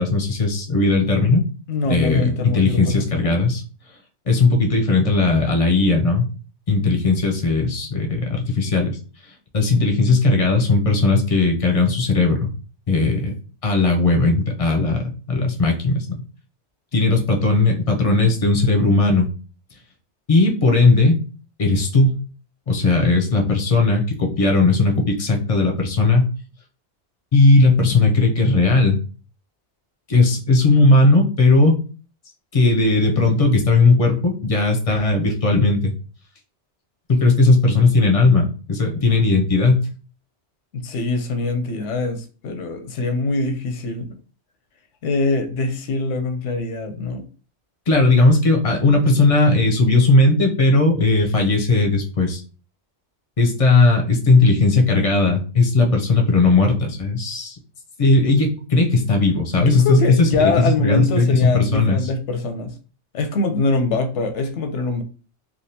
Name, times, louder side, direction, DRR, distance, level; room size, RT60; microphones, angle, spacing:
voice 1, 0.0-1.4 1.9-3.6 4.3-6.2 6.7-9.0 9.5-12.5 12.9-13.3 13.6-16.1 16.9-19.3 20.3-21.2 21.6-22.2 22.7-26.3 27.3-29.0 30.1-31.8 32.5-35.9 37.1-39.9 47.9-52.4 53.4-57.6 58.0-62.1, left 3 dB, 40° left, 3 dB, 0.5 m, -17 dB
voice 2, 1.7-3.4 40.7-44.1 45.0-47.2 59.5-62.7 63.1-65.0, left 3 dB, 85° left, 7 dB, 0.9 m, -23 dB
3.4 x 2.4 x 2.7 m, 0.37 s
omnidirectional pair, 1.2 m